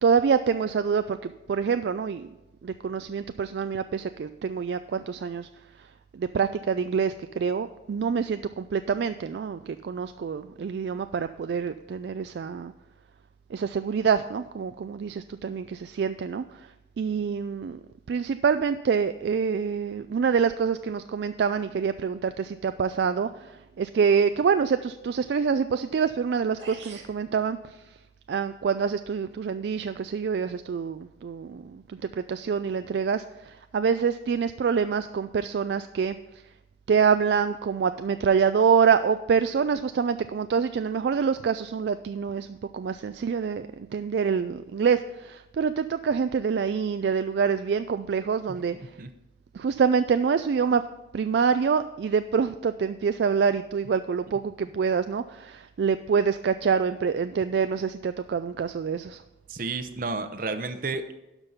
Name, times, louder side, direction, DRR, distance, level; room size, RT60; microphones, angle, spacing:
voice 1, 0.0-2.3 2.6-5.5 6.1-12.7 13.5-16.7 17.0-17.8 18.1-27.8 28.3-36.2 36.9-48.9 49.5-50.8 51.1-59.2, right 6 dB, 65° right, 10 dB, 0.3 m, -26 dB
sound 1, 26.6-27.2, right 4 dB, 85° right, 2.2 m, -44 dB
voice 2, 59.5-61.1, right 3 dB, 50° right, 9 dB, 0.7 m, -31 dB
12.0 x 5.3 x 5.6 m, 0.97 s
head